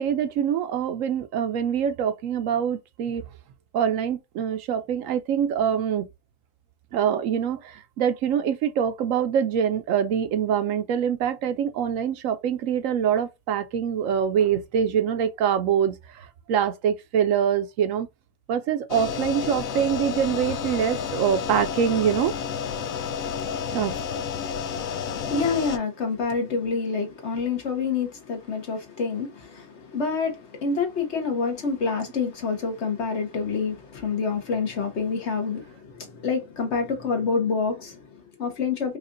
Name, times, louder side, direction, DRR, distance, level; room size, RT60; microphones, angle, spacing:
voice 1, 0.0-3.2 3.7-6.1 6.9-18.1 18.5-22.3 23.7-24.0, right 8 dB, 75° right, 1.0 m, -24 dB
sound 1, 18.9-25.8, left 7 dB, 80° left, 1.0 m, -30 dB
voice 2, 25.0-39.0, left 5 dB, 55° left, 1.3 m, -27 dB
4.9 x 2.5 x 2.5 m
omnidirectional pair, 1.4 m